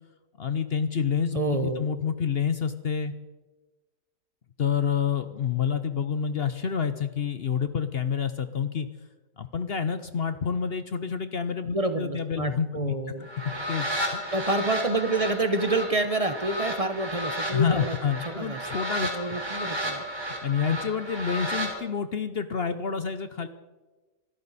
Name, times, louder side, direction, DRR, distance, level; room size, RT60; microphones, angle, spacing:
voice 1, 0.4-3.1 4.6-8.9 9.4-12.9 13.7-13.9 14.1-14.2 17.4-19.4 20.4-23.5, left 7 dB, 55° left, 10 dB, 0.7 m, -28 dB
voice 2, 1.3-1.8 11.7-13.3 14.3-18.0 18.3-18.6 19.1-20.0, right 2 dB, 35° right, 8 dB, 0.6 m, -28 dB
sound 1, 13.2-21.7, equal, 15° right, 3.6 m, -33 dB
25.5 x 13.0 x 4.1 m, 1.2 s
omnidirectional pair, 1.7 m